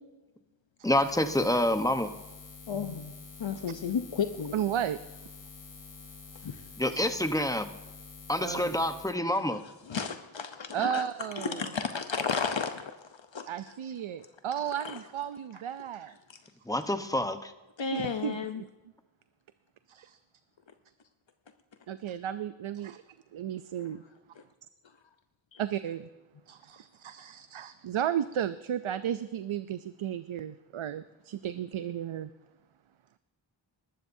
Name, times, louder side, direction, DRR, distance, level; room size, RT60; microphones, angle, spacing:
Buzz, 0.8-9.2, left 4 dB, 40° left, 1.0 m, -48 dB
voice 1, 0.8-2.1 6.8-7.7 8.3-9.6 16.7-17.5, left 1 dB, 5° left, 8 dB, 0.9 m, -27 dB
voice 2, 2.7-3.1 3.4-4.6 6.4-6.6 9.3-9.4 9.9-11.0 11.3-13.0 13.3-13.4 14.8-15.0 17.8-18.6 24.4-24.5 25.5-25.6, left 6 dB, 65° left, 7 dB, 0.8 m, -33 dB
voice 3, 4.5-5.0 6.9-7.1 8.4-8.8 10.7-11.7 13.5-16.1 17.9-18.6 19.9-20.2 21.9-23.0 23.3-24.0 25.6-26.1 26.5-32.3, right 10 dB, 75° right, 12 dB, 0.6 m, -34 dB
21.0 x 12.5 x 2.7 m, 1.1 s
wide cardioid pair, 55°, 48 cm